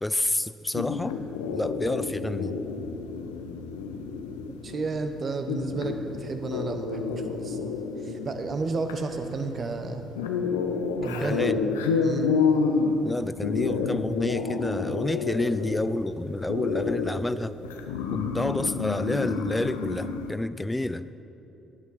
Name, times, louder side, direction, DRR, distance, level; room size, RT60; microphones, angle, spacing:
voice 1, 0.0-1.2 1.5-2.6 11.2-11.6 13.0-17.6 18.1-21.1, left 1 dB, 15° left, 15 dB, 0.4 m, -29 dB
sound 1, 0.7-20.3, left 5 dB, 80° left, 0.6 m, -30 dB
voice 2, 4.5-7.7 8.0-10.1 11.0-11.5 12.0-12.3, right 3 dB, 45° right, 7 dB, 0.9 m, -32 dB
11.0 x 10.5 x 4.1 m, 2.9 s
hypercardioid pair, 45°, 0 cm